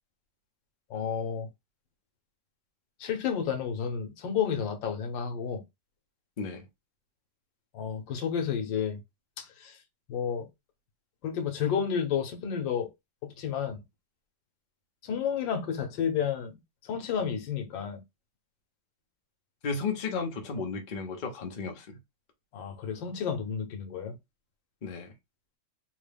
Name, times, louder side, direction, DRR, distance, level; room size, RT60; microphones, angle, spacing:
voice 1, 0.9-1.5 3.0-5.6 7.7-9.0 9.4-9.8 10.1-10.5 11.2-12.9 13.2-13.8 15.0-18.0 22.5-24.2, left 7 dB, 90° left, 1.6 m, -31 dB
voice 2, 19.6-22.0 24.8-25.1, left 4 dB, 40° left, 0.6 m, -34 dB
3.8 x 2.2 x 3.3 m
omnidirectional pair, 2.0 m